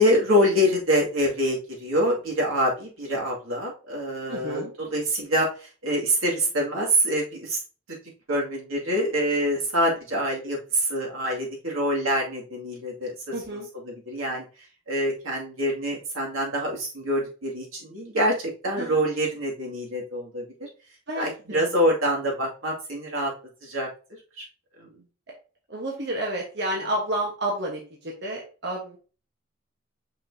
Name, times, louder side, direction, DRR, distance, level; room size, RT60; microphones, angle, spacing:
voice 1, 0.0-7.6 7.9-8.0 8.3-13.6 13.8-14.4 14.9-20.7 21.1-23.3 23.6-23.9 24.4-24.5 24.8-24.9, equal, 90° right, -2 dB, 2.4 m, -25 dB
voice 2, 4.3-4.7 13.3-13.7 18.8-19.0 21.1-21.7 25.3-25.4 25.7-29.0, right 1 dB, 55° right, -1 dB, 1.3 m, -30 dB
6.2 x 5.8 x 2.8 m, 0.35 s
head